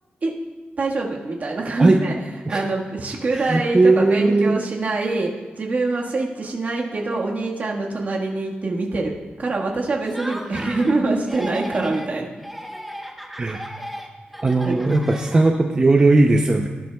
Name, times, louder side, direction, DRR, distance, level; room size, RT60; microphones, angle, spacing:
voice 1, 0.8-2.1 2.5-5.3 5.6-12.3 14.6-14.8, right 3 dB, 45° right, -1 dB, 1.4 m, -24 dB
voice 2, 3.3-4.6 13.3-13.6 14.4-16.7, right 2 dB, 25° right, 3 dB, 0.6 m, -17 dB
Laughter, 10.0-11.0 11.2-12.1 12.4-15.8, equal, 5° right, 0.9 m, -36 dB
18.0 x 10.5 x 2.2 m, 1.4 s
wide cardioid pair, 165°, 4 cm